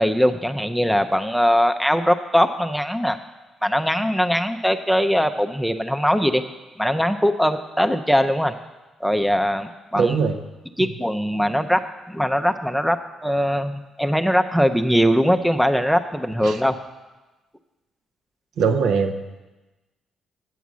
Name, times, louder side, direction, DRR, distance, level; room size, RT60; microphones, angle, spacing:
voice 1, 0.0-3.2 3.6-6.4 6.8-8.5 9.0-10.1 10.8-16.8, equal, ahead, 7 dB, 0.6 m, -21 dB
voice 2, 10.0-10.4 10.8-10.9 16.4-16.6 18.6-19.1, right 5 dB, 75° right, 6 dB, 0.8 m, -21 dB
9.3 x 7.0 x 6.2 m, 1.1 s
cardioid pair, 90°, 0 cm